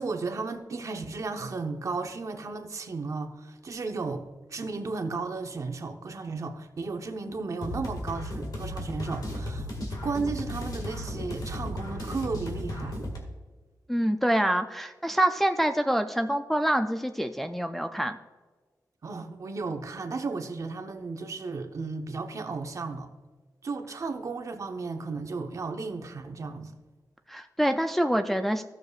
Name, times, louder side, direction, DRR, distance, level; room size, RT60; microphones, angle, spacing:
voice 1, 0.0-13.0 19.0-23.1 23.6-26.7, right 4 dB, 50° right, 0.9 m, -34 dB
sound 1, 7.6-13.2, left 1 dB, 65° left, 1.8 m, -35 dB
voice 2, 13.9-18.2 27.3-28.6, right 1 dB, 5° left, 0.3 m, -26 dB
16.5 x 6.7 x 2.4 m
wide cardioid pair, 170°, 7 cm